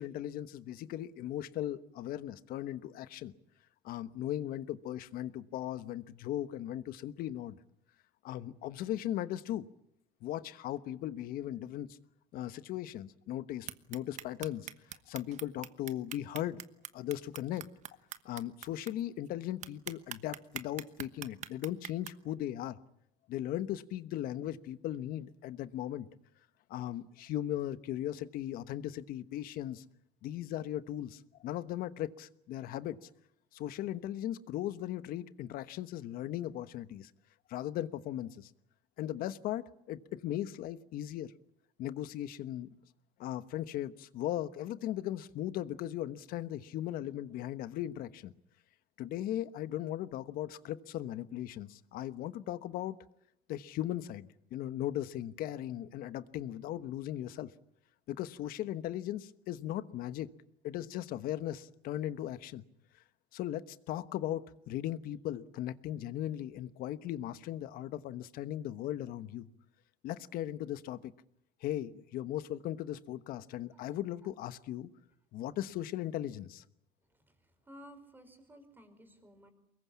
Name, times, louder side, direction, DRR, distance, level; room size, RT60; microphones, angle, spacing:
voice 1, 0.0-3.3 3.8-7.6 8.2-9.7 10.2-11.9 12.3-14.7 15.1-16.6 16.9-17.7 18.2-22.8 23.3-26.1 26.7-29.8 30.2-33.1 33.5-37.1 37.5-38.5 39.0-41.3 41.8-42.7 43.2-48.3 49.0-53.0 53.5-57.5 58.1-60.3 60.6-62.6 63.3-69.5 70.0-71.1 71.6-74.9 75.3-76.6, left 12 dB, 65° left, 1.2 m, -38 dB
sound 1, 13.7-18.9 19.3-19.4 19.6-22.1, right 11 dB, 50° right, 1.2 m, -42 dB
voice 2, 77.7-79.5, equal, 10° right, 4.9 m, -54 dB
24.0 x 21.5 x 8.5 m
cardioid pair, 125°, 16 cm